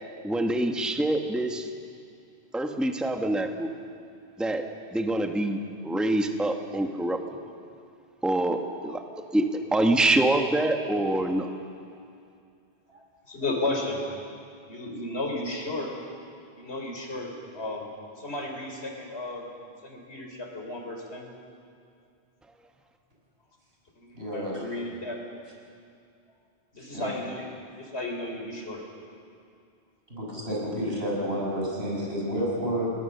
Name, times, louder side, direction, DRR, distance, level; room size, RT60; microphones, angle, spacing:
voice 1, 0.2-1.7 2.5-3.7 4.4-4.6 4.9-5.6 5.8-7.2 8.2-9.0 9.3-11.5, right 1 dB, ahead, 4 dB, 1.2 m, -25 dB
voice 2, 12.9-14.0 14.7-15.9 16.6-17.9 18.2-19.5 19.8-21.3 24.1-25.2 26.7-27.5 27.8-28.8, left 2 dB, 85° left, 1 dB, 4.2 m, -34 dB
voice 3, 24.1-24.6 26.8-27.1 30.1-32.9, equal, 75° right, -3 dB, 6.3 m, -30 dB
30.0 x 19.5 x 6.8 m, 2.4 s
omnidirectional pair, 1.1 m